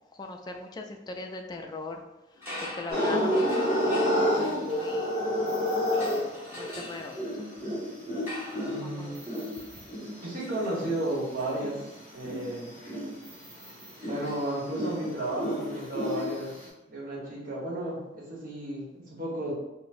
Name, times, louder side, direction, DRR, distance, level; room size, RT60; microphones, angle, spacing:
voice 1, 0.2-2.0 2.4-4.0 4.3-5.3 6.5-7.2 8.7-9.5, left 2 dB, 20° left, 3 dB, 0.3 m, -40 dB
sound 1, 2.3-5.4 5.9-14.9, left 1 dB, 15° right, 1.1 m, -45 dB
sound 2, 2.9-11.1 11.6-16.7, equal, 35° right, 1.5 m, -30 dB
voice 2, 8.6-9.1 10.2-12.7 14.0-16.5 16.9-19.5, right 1 dB, 50° right, -5 dB, 1.2 m, -33 dB
4.7 x 2.0 x 2.6 m, 0.98 s
head